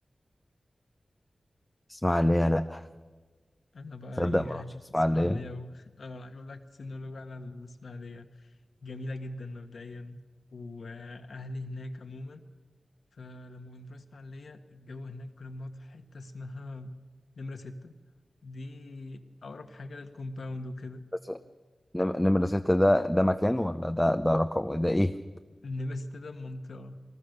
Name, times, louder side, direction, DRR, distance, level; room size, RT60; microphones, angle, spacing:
voice 1, 1.9-2.8 4.2-4.6 4.9-5.4 21.3-21.4 21.9-25.1, left 1 dB, 10° left, 7 dB, 0.6 m, -25 dB
voice 2, 3.7-10.2 10.5-12.4 13.1-16.9 17.4-17.9 18.4-21.0 25.6-26.9, left 2 dB, 80° left, 6 dB, 1.5 m, -41 dB
23.5 x 19.5 x 6.7 m, 1.4 s
wide cardioid pair, 105°, 0 cm